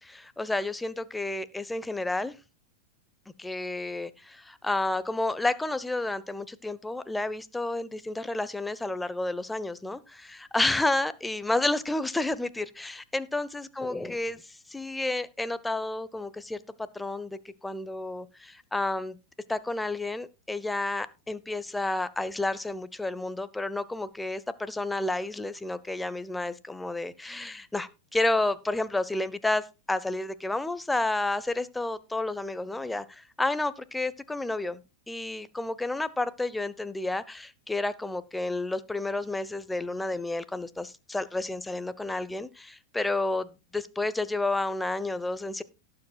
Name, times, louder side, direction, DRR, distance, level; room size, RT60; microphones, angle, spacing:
voice 1, 0.0-2.3 3.4-16.6 16.9-19.2 19.5-34.8 35.1-45.6, left 2 dB, 5° left, 0.8 m, -31 dB
18.5 x 7.6 x 2.3 m
figure-of-eight pair, 90°, 0 cm